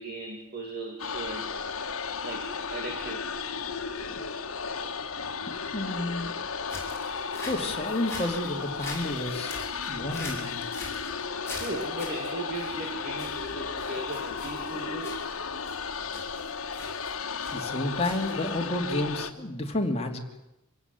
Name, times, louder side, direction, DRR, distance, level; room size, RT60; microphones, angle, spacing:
voice 1, 0.0-1.5 2.2-3.2 11.5-15.2, right 2 dB, 45° right, 2 dB, 2.7 m, -37 dB
sound 1, 1.0-19.3, left 5 dB, 75° left, 1.6 m, -34 dB
voice 2, 5.5-6.3 7.4-9.6 9.9-10.6 17.5-20.2, left 1 dB, 30° left, 2 dB, 2.8 m, -31 dB
sound 2, 6.6-18.7, left 3 dB, 10° left, 7.0 m, -43 dB
26.5 x 16.5 x 9.6 m, 0.92 s
head